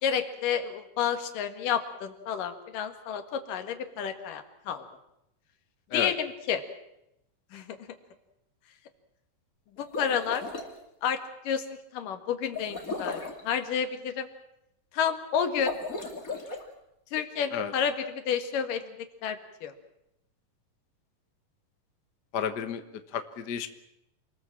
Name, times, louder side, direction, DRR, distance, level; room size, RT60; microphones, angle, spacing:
voice 1, 0.0-4.8 5.9-6.6 7.5-7.8 9.8-10.5 11.0-11.6 11.9-14.3 14.9-15.7 17.1-18.8 19.2-19.7, left 8 dB, 75° left, 7 dB, 3.4 m, -30 dB
sound 1, 9.8-10.7 12.5-13.4 15.5-16.6, left 3 dB, 25° left, 2.7 m, -36 dB
voice 2, 22.3-22.8 23.1-23.7, left 8 dB, 55° left, 8 dB, 1.1 m, -31 dB
27.5 x 20.0 x 7.5 m, 0.83 s
omnidirectional pair, 3.9 m